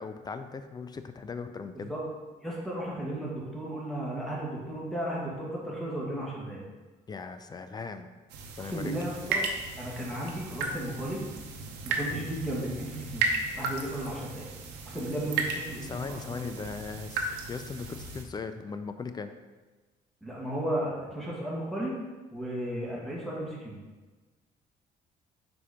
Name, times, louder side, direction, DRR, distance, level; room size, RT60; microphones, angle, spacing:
voice 1, 0.0-1.9 7.1-8.1 8.6-8.9 15.8-19.3, left 4 dB, 25° left, 9 dB, 0.4 m, -38 dB
voice 2, 2.4-6.6 8.6-9.5 9.8-11.2 11.8-13.3 13.5-14.5 14.9-16.5 20.2-21.9 22.3-23.8, right 1 dB, ahead, -5 dB, 1.8 m, -34 dB
sound 1, 8.3-18.2, right 3 dB, 90° right, 0.8 m, -35 dB
4.4 x 4.3 x 5.0 m, 1.3 s
cardioid pair, 110°, 17 cm